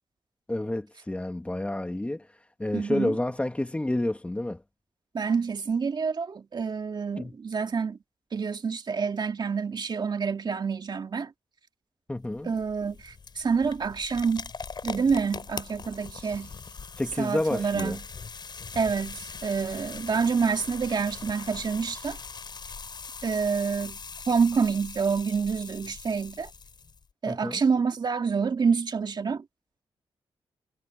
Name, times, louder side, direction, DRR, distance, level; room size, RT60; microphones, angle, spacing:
voice 1, 0.5-2.3 2.6-4.6 7.2-7.3 12.1-12.5 17.0-18.0 27.3-27.6, left 1 dB, 10° left, 1.7 m, -29 dB
voice 2, 2.7-3.2 5.1-8.0 8.3-11.3 12.4-14.5 14.8-16.5 17.2-18.0 18.7-22.2 23.2-24.0 24.3-26.5 27.2-29.4, right 5 dB, 45° right, 2.3 m, -27 dB
sound 1, 12.2-27.0, left 5 dB, 45° left, 5.8 m, -41 dB
cardioid pair, 100°, 10 cm